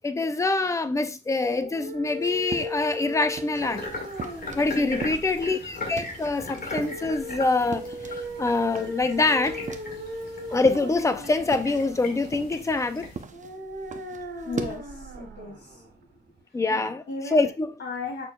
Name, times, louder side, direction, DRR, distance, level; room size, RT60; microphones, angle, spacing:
voice 1, 0.0-3.8 4.5-9.6 10.5-13.1 16.5-17.0 17.3-17.7, left 3 dB, 15° left, 0.5 m, -25 dB
sound 1, 1.4-16.4, equal, 90° right, 2.2 m, -39 dB
sound 2, 2.1-3.8 4.2-8.3 8.6-10.3 10.6-14.8, right 5 dB, 45° right, 0.8 m, -40 dB
sound 3, 3.5-13.2, left 3 dB, 55° left, 2.1 m, -39 dB
voice 2, 4.7-5.2 14.5-15.8 16.7-16.8 17.1-17.5 17.8-18.3, left 3 dB, 85° left, 2.8 m, -35 dB
6.9 x 6.1 x 2.4 m
wide cardioid pair, 165°, 18 cm